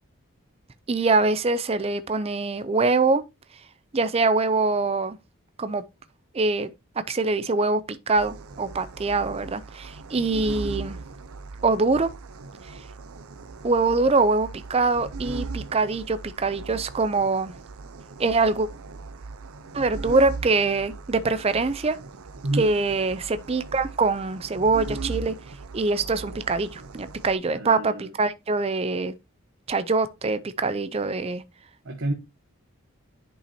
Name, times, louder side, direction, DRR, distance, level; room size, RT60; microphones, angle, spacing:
voice 1, 0.9-3.2 3.9-5.2 5.6-5.8 6.3-6.7 7.1-11.0 11.6-12.1 13.6-17.5 18.2-18.7 19.7-22.0 22.6-25.3 25.7-29.1 29.7-31.4, right 3 dB, 25° right, 0.5 m, -24 dB
sound 1, 8.2-27.3, right 4 dB, 80° right, 0.6 m, -39 dB
voice 2, 22.4-22.7 27.5-28.1 31.8-32.1, right 1 dB, 60° right, 1.1 m, -28 dB
9.9 x 5.5 x 2.8 m
head